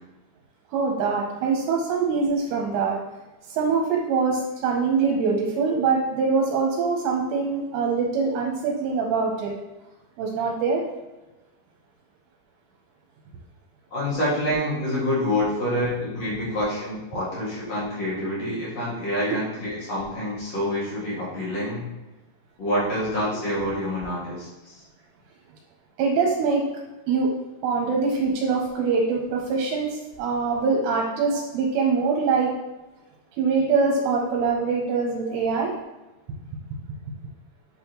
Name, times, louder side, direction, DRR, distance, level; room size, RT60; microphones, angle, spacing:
voice 1, 0.7-3.0 3.5-9.5 10.2-10.8 26.0-26.6 27.1-27.3 27.6-32.5 33.4-35.7, right 4 dB, 80° right, -1 dB, 2.9 m, -23 dB
voice 2, 13.9-21.8 22.6-24.8 31.3-31.4 35.2-35.4, left 1 dB, 45° left, -8 dB, 2.5 m, -27 dB
8.2 x 4.1 x 3.0 m, 1.1 s
omnidirectional pair, 5.1 m